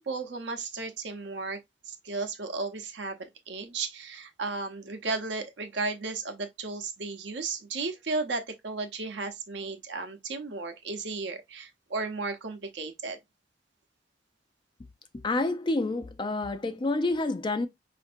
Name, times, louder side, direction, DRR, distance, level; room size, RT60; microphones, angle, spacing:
voice 1, 0.0-1.6 1.8-3.2 3.5-13.2, right 3 dB, 70° right, 0.7 m, -34 dB
voice 2, 15.1-17.7, left 2 dB, 25° left, 0.4 m, -28 dB
5.1 x 2.6 x 2.5 m
head